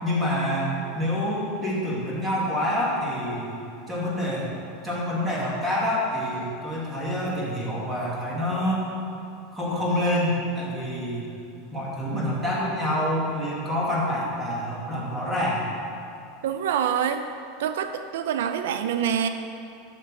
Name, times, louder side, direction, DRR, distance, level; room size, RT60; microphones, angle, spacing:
voice 1, 0.0-3.6 3.9-4.5 4.8-8.8 9.5-11.3 11.7-15.7, left 1 dB, 10° right, -6 dB, 2.7 m, -27 dB
voice 2, 16.4-17.3 17.6-19.3, right 8 dB, 85° right, 9 dB, 0.5 m, -26 dB
12.0 x 6.7 x 4.9 m, 2.7 s
supercardioid pair, 145°, 0 cm